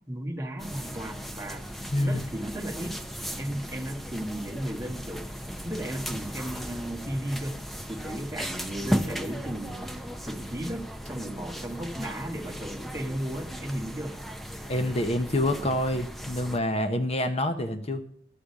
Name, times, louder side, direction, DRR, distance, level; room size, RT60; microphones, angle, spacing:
voice 1, 0.1-1.6 2.0-3.0 3.4-5.2 5.6-7.6 7.9-10.0 10.3-14.2, right 1 dB, 15° right, 0 dB, 1.3 m, -35 dB
sound 1, 0.6-16.6, equal, ahead, 0.6 m, -36 dB
voice 2, 14.6-18.0, left 1 dB, 35° left, 7 dB, 0.7 m, -27 dB
11.5 x 5.1 x 8.2 m, 0.64 s
head